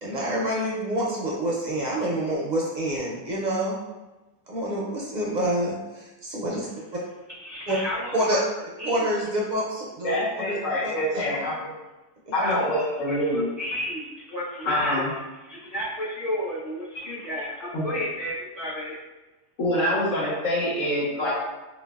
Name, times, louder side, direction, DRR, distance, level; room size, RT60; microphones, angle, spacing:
voice 1, 0.0-3.8 4.5-6.7 7.7-7.8 8.1-8.4 8.8-10.6 10.8-11.3, right 1 dB, 55° right, -3 dB, 0.5 m, -27 dB
voice 2, 7.4-8.4 8.8-9.1 12.4-15.2 15.5-19.0, left 1 dB, 45° left, -11 dB, 0.8 m, -32 dB
voice 3, 10.0-11.7 12.3-13.5 14.6-15.1 17.7-17.9 19.6-21.3, left 1 dB, 85° left, -6 dB, 1.3 m, -25 dB
3.9 x 2.2 x 2.3 m, 1.1 s
omnidirectional pair, 1.3 m